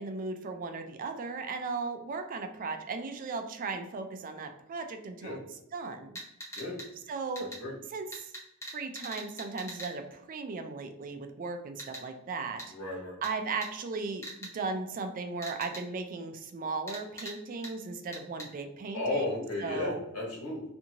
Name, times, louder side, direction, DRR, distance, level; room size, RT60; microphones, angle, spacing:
voice 1, 0.0-6.1 7.1-7.5 7.9-8.3 8.7-12.7 13.2-20.0, right 4 dB, 40° right, 6 dB, 0.3 m, -37 dB
sound 1, 6.2-6.9 7.4-7.6 8.1-9.9 11.8-12.0 12.6-12.7 13.2-13.3 13.6-13.7 14.2-14.5 15.4-15.8 16.9-17.3 17.6-17.7 18.1-18.5, right 1 dB, 15° left, 0.8 m, -41 dB
voice 2, 7.4-7.7 12.7-13.2 18.9-20.6, left 2 dB, 90° left, -3 dB, 1.3 m, -34 dB
2.6 x 2.6 x 2.8 m, 0.80 s
head